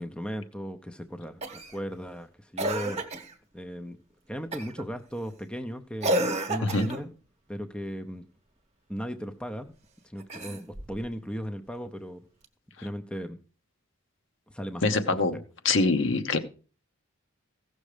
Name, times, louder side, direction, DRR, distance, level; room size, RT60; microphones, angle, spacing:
voice 1, 0.0-3.0 3.5-4.0 4.3-6.1 6.5-7.1 7.5-8.2 8.9-9.7 10.0-12.2 12.8-13.4 14.5-15.2, equal, 5° left, 0.6 m, -36 dB
Cough, 1.4-1.8 2.6-3.3 4.5-4.8 6.0-7.1 10.2-11.0 12.4-12.5, right 1 dB, 30° right, 1.1 m, -30 dB
voice 2, 14.8-15.4 15.6-16.4, left 3 dB, 60° left, 1.0 m, -24 dB
15.5 x 6.3 x 5.0 m
head